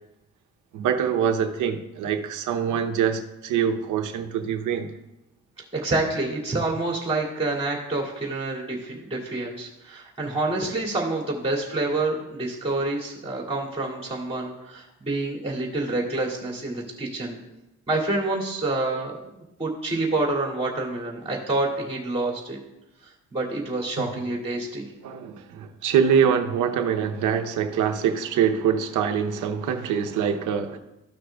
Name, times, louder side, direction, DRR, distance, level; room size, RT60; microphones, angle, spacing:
voice 1, 0.7-4.9 24.0-24.2 25.0-30.8, right 8 dB, 80° right, 5 dB, 0.8 m, -24 dB
voice 2, 5.7-17.4 17.9-22.6 23.0-24.9, right 2 dB, 20° right, -4 dB, 2.4 m, -28 dB
14.0 x 6.2 x 2.3 m, 0.95 s
cardioid pair, 90°, 30 cm